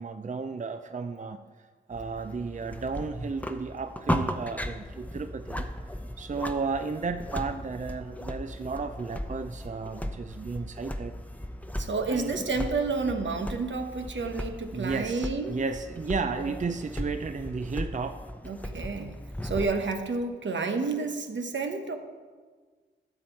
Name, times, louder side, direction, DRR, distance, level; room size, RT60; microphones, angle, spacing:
voice 1, 0.0-1.4 1.9-5.7 6.2-11.1 12.1-12.5 14.7-18.2, right 4 dB, 40° right, 9 dB, 0.5 m, -33 dB
sound 1, 1.9-19.7, equal, 10° left, 0.7 m, -37 dB
voice 2, 11.8-15.6 16.3-16.5 18.4-19.2 19.4-22.0, right 4 dB, 75° right, 6 dB, 0.9 m, -30 dB
12.0 x 7.2 x 4.5 m, 1.5 s
cardioid pair, 45°, 19 cm